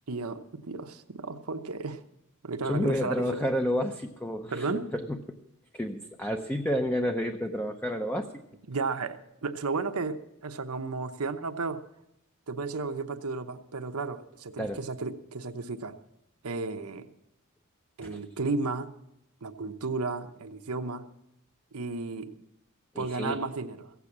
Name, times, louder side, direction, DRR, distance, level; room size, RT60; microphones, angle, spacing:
voice 1, 0.1-2.0 2.4-3.2 4.5-4.9 8.7-11.8 12.5-16.0 16.4-17.1 18.0-18.9 19.4-21.1 21.7-22.3 23.0-23.9, right 3 dB, 80° right, 8 dB, 0.9 m, -33 dB
voice 2, 2.6-5.2 5.7-8.3 14.6-14.8 18.0-18.2 22.9-23.4, equal, 10° left, 5 dB, 0.6 m, -30 dB
16.0 x 8.3 x 7.3 m, 0.83 s
head